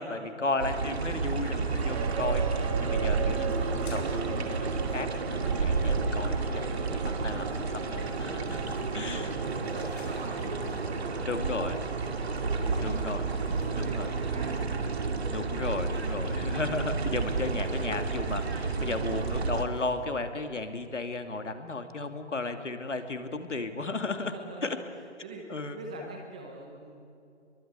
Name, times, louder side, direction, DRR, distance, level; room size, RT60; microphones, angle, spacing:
voice 1, 0.0-4.5 4.9-9.7 11.3-11.8 12.8-13.3 13.7-14.1 15.3-24.3 24.6-24.8 25.5-25.8, left 3 dB, 90° left, 7 dB, 2.7 m, -34 dB
sound 1, 0.6-19.6, right 4 dB, 60° right, 2.5 m, -31 dB
sound 2, 1.1-19.9, left 1 dB, 45° left, 5.7 m, -47 dB
sound 3, 1.8-16.5, right 6 dB, 30° right, 1.9 m, -41 dB
voice 2, 8.8-12.8 13.3-14.5 24.2-24.8 25.2-27.0, right 2 dB, 5° right, 0 dB, 0.6 m, -45 dB
23.5 x 23.0 x 8.4 m, 2.6 s
hypercardioid pair, 160°, 35 cm